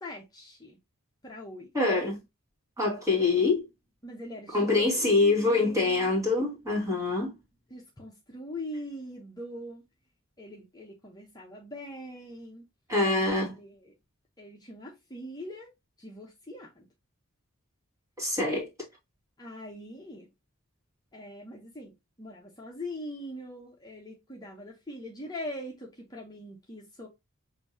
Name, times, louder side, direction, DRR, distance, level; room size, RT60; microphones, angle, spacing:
voice 1, 0.0-0.8 1.2-1.7 4.0-6.1 7.7-9.8 10.4-12.6 13.4-13.9 14.4-15.7 16.0-16.9 19.4-20.3 21.1-27.1, left 1 dB, 20° left, 0.9 m, -42 dB
voice 2, 1.7-2.2 2.8-3.7 4.5-7.3 12.9-13.5 18.2-18.7, left 3 dB, 15° right, 2.1 m, -25 dB
6.8 x 2.7 x 2.8 m
head